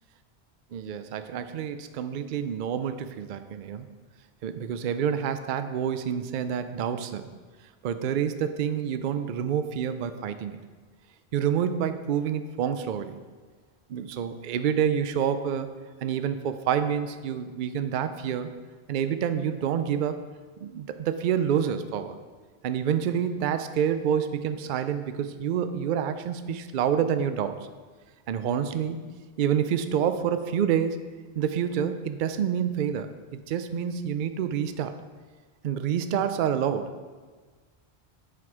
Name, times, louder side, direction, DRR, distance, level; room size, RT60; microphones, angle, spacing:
voice 1, 0.7-3.9 4.4-7.3 7.8-10.6 11.3-13.2 13.9-15.7 16.0-18.5 18.9-20.2 20.6-22.2 22.6-27.6 28.3-29.0 29.4-31.0 31.4-34.9 35.6-37.0, right 8 dB, 60° right, 10 dB, 0.6 m, -28 dB
7.4 x 6.0 x 4.7 m, 1.5 s
omnidirectional pair, 1.1 m